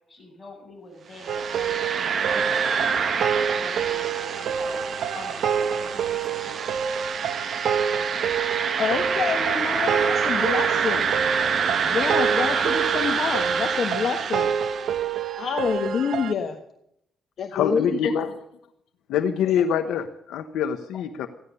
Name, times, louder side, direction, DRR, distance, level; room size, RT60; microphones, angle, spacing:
voice 1, 0.1-6.8, left 1 dB, 25° left, 0 dB, 7.4 m, -44 dB
sound 1, 1.2-15.1, right 6 dB, 50° right, 1.1 m, -27 dB
sound 2, 1.3-16.3, right 7 dB, 70° right, 0.8 m, -28 dB
voice 2, 8.8-11.2 11.8-14.5 15.4-16.6 17.4-18.1 19.5-19.6 20.9-21.0, left 6 dB, 55° left, 5 dB, 1.4 m, -27 dB
voice 3, 17.5-18.3 19.1-21.3, left 8 dB, 85° left, 8 dB, 1.0 m, -25 dB
15.5 x 11.0 x 6.7 m, 0.73 s
cardioid pair, 90°, 0 cm